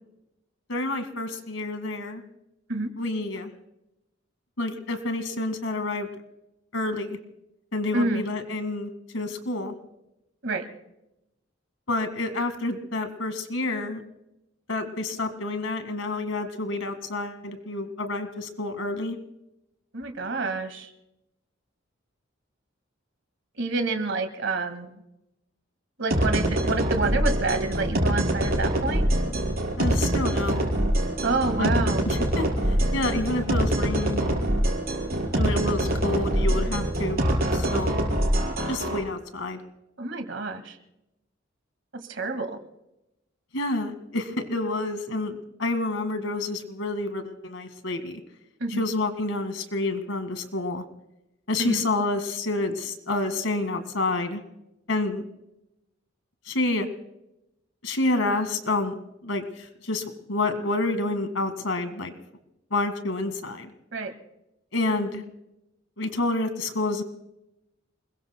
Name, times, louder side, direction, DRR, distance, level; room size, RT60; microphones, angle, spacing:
voice 1, 0.7-2.2 3.0-3.5 4.6-6.1 6.7-7.2 7.7-9.7 11.9-14.0 14.7-19.2 29.8-30.7 31.6-31.7 32.0-32.5 32.9-34.4 35.3-37.2 37.5-37.9 38.7-39.6 43.5-48.2 48.7-50.8 51.5-54.4 54.9-55.3 56.5-56.9 57.8-58.9 59.2-60.0 60.3-62.1 62.7-63.7 64.7-65.3 66.0-67.0, left 2 dB, 90° left, 9 dB, 1.9 m, -28 dB
voice 2, 19.9-20.9 23.6-25.0 26.0-29.1 31.2-32.0 40.0-40.8 41.9-42.6 48.6-48.8 51.6-51.8 63.9-64.1, right 3 dB, 65° right, 8 dB, 1.9 m, -28 dB
sound 1, 26.1-39.0, right 1 dB, 50° right, 4.7 m, -24 dB
28.5 x 21.5 x 2.2 m, 0.89 s
head